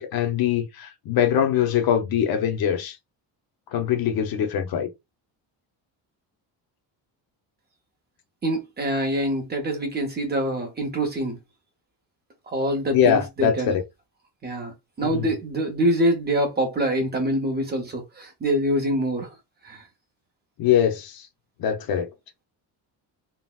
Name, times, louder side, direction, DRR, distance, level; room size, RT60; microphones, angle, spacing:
voice 1, 0.0-3.0 3.7-4.9 12.9-13.8 15.0-15.3 20.6-21.3 21.6-22.1, left 9 dB, 55° left, 0.6 m, -22 dB
voice 2, 8.4-11.4 12.5-13.8 14.4-14.7 15.0-19.3 19.6-19.9, right 1 dB, 25° right, 0.6 m, -25 dB
3.8 x 2.0 x 2.3 m
cardioid pair, 175°, 43 cm